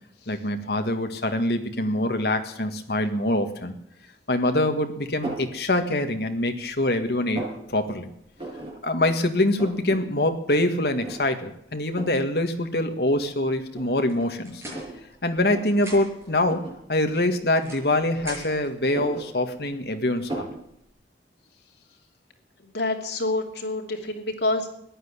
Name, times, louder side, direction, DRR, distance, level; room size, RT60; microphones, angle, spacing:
voice 1, 0.3-3.7 4.3-7.4 7.7-8.1 8.8-14.6 15.2-20.5, left 1 dB, 65° left, 6 dB, 1.7 m, -24 dB
sound 1, 5.2-5.5 6.1-6.7 7.0-7.6 8.4-8.7 9.1-9.2 9.4-10.0 10.3-10.4 11.0-11.4 12.0-12.2 13.1-13.2 13.7-15.0 15.4-15.6 16.4-16.8 17.7-18.4 18.8-19.8 20.3-20.6, right 1 dB, 30° right, 7.2 m, -35 dB
sound 2, 14.1-15.5 15.7-16.3 17.1-18.8, right 1 dB, 15° right, 6.8 m, -42 dB
voice 2, 22.6-24.7, left 2 dB, 80° left, 2 dB, 2.8 m, -27 dB
14.5 x 10.5 x 9.6 m, 0.76 s
head